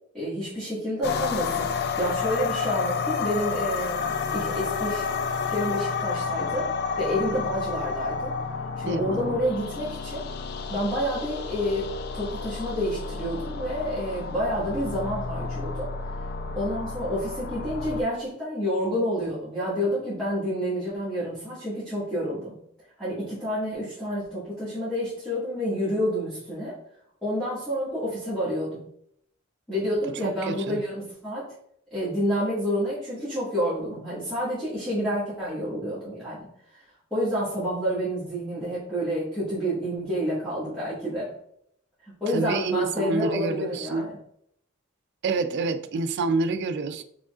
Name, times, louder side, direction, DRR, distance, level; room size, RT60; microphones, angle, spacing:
voice 1, 0.1-5.1 5.5-6.7 7.0-8.4 8.8-10.3 10.7-15.9 16.5-22.6 23.0-26.8 27.2-28.8 29.7-31.5 31.9-36.8 37.1-41.3 42.1-44.2, equal, 5° left, -12 dB, 1.7 m, -29 dB
sound 1, 1.0-18.0, left 5 dB, 50° left, 0.3 m, -30 dB
voice 2, 8.8-9.4 30.2-30.8 42.3-44.1 45.2-47.0, right 3 dB, 55° right, 10 dB, 0.3 m, -28 dB
5.1 x 3.5 x 2.3 m, 0.71 s
head